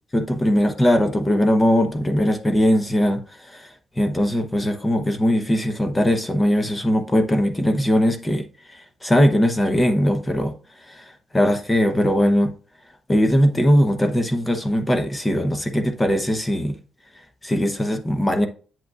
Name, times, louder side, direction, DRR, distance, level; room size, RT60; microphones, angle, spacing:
voice 1, 0.1-10.5 10.9-12.5 13.1-16.8 17.4-18.5, equal, 15° left, 0.8 m, -20 dB
7.9 x 7.5 x 2.3 m
cardioid pair, 125°, 0 cm